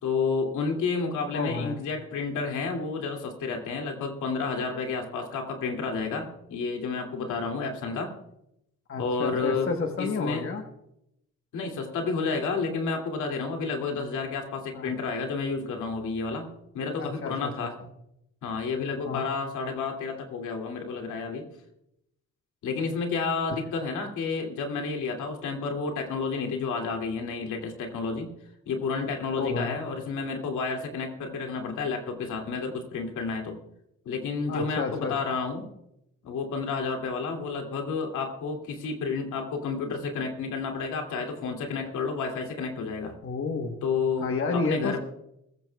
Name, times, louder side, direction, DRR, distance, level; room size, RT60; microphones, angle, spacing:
voice 1, 0.0-8.1 9.0-9.7 10.0-10.4 11.5-16.5 16.7-17.7 18.4-21.5 22.6-28.3 28.7-33.6 34.0-35.7 36.2-43.1 43.8-45.0, left 4 dB, 80° left, 2 dB, 2.5 m, -30 dB
voice 2, 1.3-1.8 8.9-10.6 14.7-14.9 17.0-17.5 19.0-19.3 29.4-29.8 34.5-35.1 43.2-43.8 44.2-45.0, left 4 dB, 45° left, 4 dB, 1.2 m, -30 dB
20.5 x 15.0 x 2.3 m, 0.81 s
cardioid pair, 90°, 30 cm